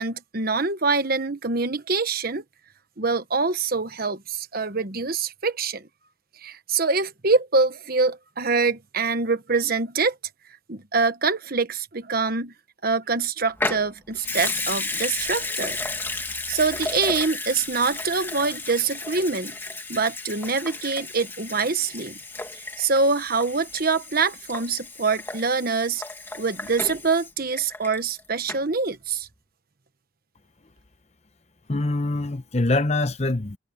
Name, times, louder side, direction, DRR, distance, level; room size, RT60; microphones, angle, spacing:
voice 1, 0.0-2.4 3.0-5.9 6.4-10.1 10.7-12.5 12.8-15.8 16.5-19.6 19.9-22.2 22.5-26.0 26.4-29.3, right 4 dB, 45° right, 1.2 m, -25 dB
Water tap faucet / Sink (filling or washing) / Liquid, 13.6-28.2 28.5-28.6, left 3 dB, 10° left, 1.8 m, -33 dB
voice 2, 31.7-33.6, left 2 dB, 30° left, 0.8 m, -24 dB
head